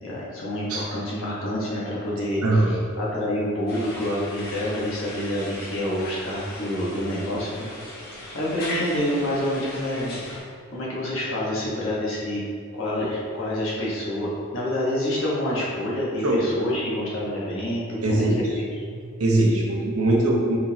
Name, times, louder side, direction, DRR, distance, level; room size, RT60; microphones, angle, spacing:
voice 1, 0.0-7.7 7.9-8.1 8.3-10.2 10.7-12.4 12.7-18.3 18.5-18.6, left 1 dB, 65° left, -6 dB, 1.3 m, -27 dB
voice 2, 2.4-2.8 16.2-16.4 18.0-18.4 19.2-20.6, right 1 dB, 90° right, -1 dB, 0.8 m, -21 dB
sound 1, 3.7-10.4, left 1 dB, 45° left, 1.1 m, -37 dB
4.5 x 4.0 x 2.8 m, 2.3 s
head